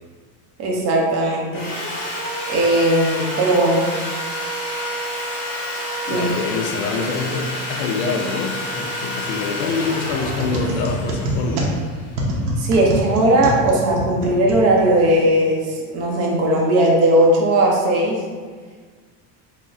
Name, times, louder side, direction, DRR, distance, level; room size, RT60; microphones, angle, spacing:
voice 1, 0.6-1.7 2.0-2.1 2.5-3.9 6.1-6.3 12.6-18.2, right 1 dB, 40° right, -2 dB, 0.6 m, -18 dB
Sawing, 1.5-12.6, equal, 30° left, 1.4 m, -29 dB
voice 2, 6.1-11.7, left 4 dB, 60° left, 3 dB, 0.5 m, -25 dB
sound 1, 10.0-15.1, equal, 75° right, 0.8 m, -26 dB
5.9 x 2.0 x 2.5 m, 1.5 s
cardioid pair, 175°, 41 cm